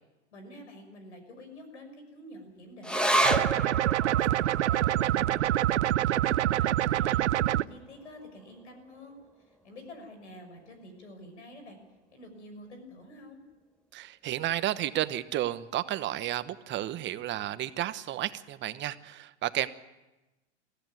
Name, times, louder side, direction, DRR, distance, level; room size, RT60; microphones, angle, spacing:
voice 1, 0.3-3.2 3.5-4.4 4.7-5.7 6.1-9.2 9.6-11.8 12.1-13.4, left 1 dB, 85° left, 7 dB, 6.1 m, -48 dB
sound 1, 2.8-9.6 9.9-10.0 10.4-11.0 11.6-11.7, right 1 dB, 5° left, 1.4 m, -33 dB
sound 2, 3.2-7.6, right 13 dB, 85° right, 0.6 m, -26 dB
voice 2, 13.9-19.7, right 13 dB, 35° right, 13 dB, 1.1 m, -32 dB
22.5 x 15.0 x 9.4 m, 1.1 s
hypercardioid pair, 110°, 34 cm